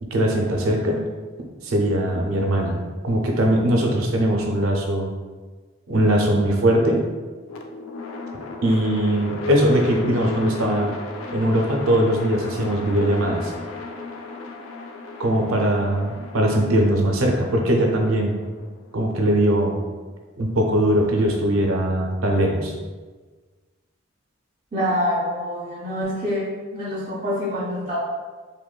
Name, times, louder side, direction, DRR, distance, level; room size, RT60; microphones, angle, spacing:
voice 1, 0.0-1.0 1.6-5.1 5.9-7.0 8.6-10.9 11.3-13.5 15.2-18.3 18.9-19.7 20.4-22.7, right 1 dB, 90° right, 1 dB, 0.5 m, -20 dB
sound 1, 7.5-19.6, left 3 dB, 85° left, 0.3 m, -36 dB
voice 2, 24.7-28.0, equal, 30° right, -6 dB, 0.4 m, -26 dB
2.9 x 2.1 x 2.2 m, 1.4 s
head